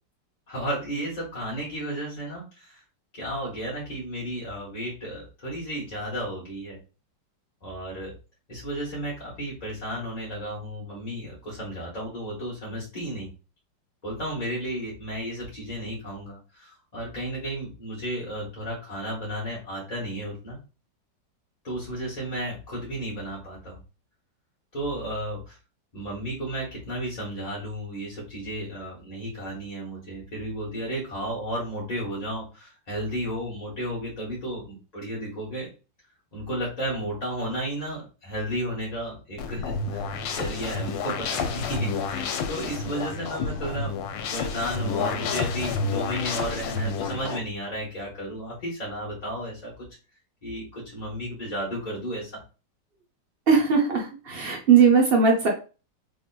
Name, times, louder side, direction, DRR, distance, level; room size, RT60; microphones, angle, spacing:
voice 1, 0.5-2.8 3.1-6.8 7.6-8.1 8.5-13.3 14.0-20.6 21.6-23.8 24.7-25.6 25.9-35.7 36.3-43.9 44.3-49.7 50.4-52.4, right 1 dB, 30° left, -6 dB, 0.9 m, -33 dB
sound 1, 39.4-47.4, left 4 dB, 85° left, 1.3 m, -30 dB
voice 2, 53.5-55.5, right 6 dB, 50° right, 0 dB, 0.7 m, -19 dB
3.6 x 2.7 x 2.2 m, 0.33 s
omnidirectional pair, 2.0 m